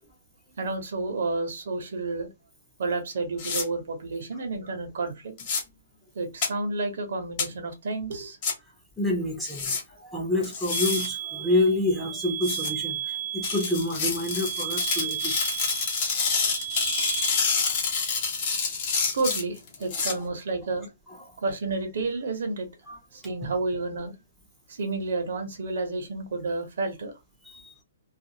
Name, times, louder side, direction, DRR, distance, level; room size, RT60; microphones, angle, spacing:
voice 1, 0.6-2.3 2.8-5.3 6.1-8.4 19.1-20.9 21.4-22.7 23.1-24.1 24.7-27.1, right 3 dB, 60° right, 0.8 m, -30 dB
sound 1, 3.4-3.6 5.4-5.6 6.4-6.5 7.4-7.5 8.4-8.5 9.4-9.8 10.4-11.1 12.4-12.7 13.4-20.1, left 5 dB, 30° left, 1.0 m, -27 dB
voice 2, 9.0-15.3 19.9-20.0 22.9-23.0 27.4-27.7, left 1 dB, ahead, 0.6 m, -28 dB
sound 2, 10.7-17.3, right 11 dB, 75° right, 0.5 m, -34 dB
2.4 x 2.3 x 2.8 m
hypercardioid pair, 170°, 0 cm